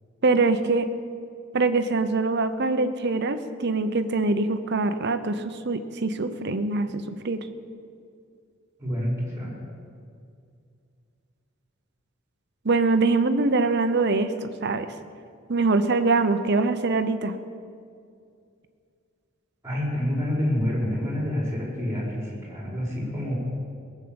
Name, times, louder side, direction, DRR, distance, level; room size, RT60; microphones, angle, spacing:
voice 1, 0.2-0.9 1.5-7.4 12.6-14.9 15.5-17.3, right 3 dB, 55° right, 10 dB, 0.9 m, -23 dB
voice 2, 8.8-9.5 19.6-23.3, equal, 15° right, -4 dB, 4.5 m, -27 dB
19.0 x 7.4 x 8.8 m, 2.4 s
head